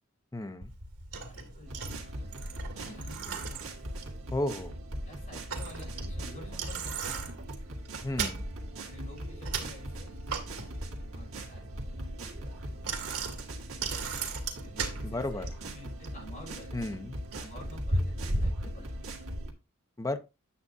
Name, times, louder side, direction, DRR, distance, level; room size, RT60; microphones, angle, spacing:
voice 1, 0.3-0.7 4.3-4.7 8.0-8.4 15.0-15.5 16.7-17.2 20.0-20.2, left 1 dB, 15° left, 0.6 m, -33 dB
Bicycle, 0.6-19.5, right 2 dB, 85° right, 1.9 m, -37 dB
voice 2, 1.3-3.6 5.1-7.3 8.9-10.2 11.0-13.6 14.6-17.0 17.3-18.9, left 1 dB, 35° left, 5.6 m, -50 dB
sound 1, 1.7-19.5, right 1 dB, 65° right, 1.8 m, -41 dB
8.5 x 7.7 x 2.7 m
head